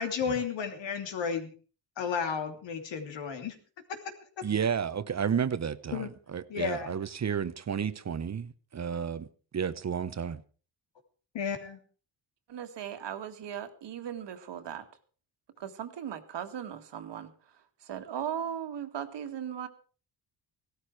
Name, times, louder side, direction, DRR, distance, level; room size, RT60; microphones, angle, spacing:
voice 1, 0.0-1.5 2.0-3.5 5.9-6.1 6.5-6.9 11.3-11.8, left 6 dB, 80° left, 3.0 m, -32 dB
voice 2, 4.4-9.3 9.5-10.4, right 7 dB, 40° right, 0.9 m, -32 dB
voice 3, 12.5-14.9 15.6-17.3 17.8-19.7, right 9 dB, 70° right, 1.9 m, -37 dB
16.5 x 13.0 x 4.7 m
cardioid pair, 95°, 44 cm